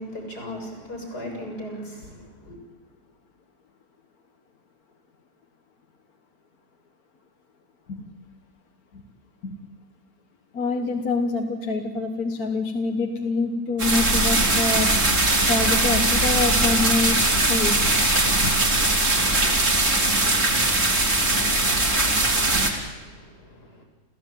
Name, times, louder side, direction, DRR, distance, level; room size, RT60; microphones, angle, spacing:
voice 1, 0.0-2.6 19.3-23.8, equal, 85° left, 2 dB, 7.9 m, -40 dB
voice 2, 10.5-14.9 15.5-17.2 17.4-17.9 18.4-18.6, left 3 dB, 65° left, 4 dB, 1.9 m, -26 dB
Rain coming down from roof, 13.8-22.7, right 2 dB, 50° right, 3.5 m, -20 dB
29.0 x 15.5 x 9.2 m, 1.4 s
omnidirectional pair, 1.7 m